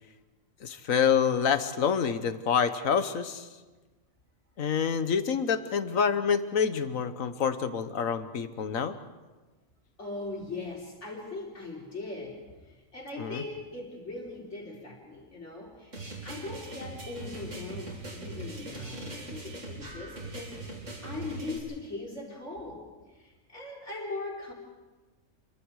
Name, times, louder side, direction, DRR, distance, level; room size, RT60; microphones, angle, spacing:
voice 1, 0.6-3.5 4.6-9.0 13.2-13.4, left 7 dB, 85° left, 11 dB, 1.5 m, -27 dB
voice 2, 10.0-20.6 21.0-22.9 23.1-24.5, left 2 dB, 60° left, -2 dB, 4.5 m, -40 dB
sound 1, 15.9-21.6, right 2 dB, 65° right, 3.5 m, -40 dB
28.5 x 23.0 x 4.8 m, 1.2 s
omnidirectional pair, 1.4 m